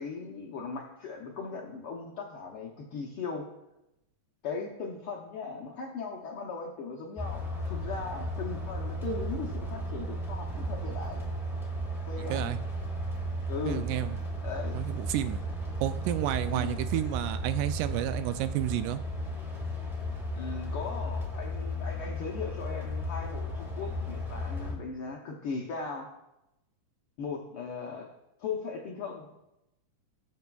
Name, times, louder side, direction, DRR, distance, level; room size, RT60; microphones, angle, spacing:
voice 1, 0.0-3.4 4.4-11.3 12.1-12.5 13.5-13.9 14.4-14.8 16.5-16.8 20.3-26.1 27.2-28.1 28.4-29.4, left 4 dB, 75° left, -1 dB, 1.2 m, -38 dB
sound 1, 7.2-24.7, equal, ahead, 0.8 m, -34 dB
voice 2, 12.2-12.6 13.7-14.2 14.7-15.4 15.8-19.0, right 12 dB, 90° right, 11 dB, 2.1 m, -31 dB
19.5 x 6.7 x 2.3 m, 0.92 s
omnidirectional pair, 3.5 m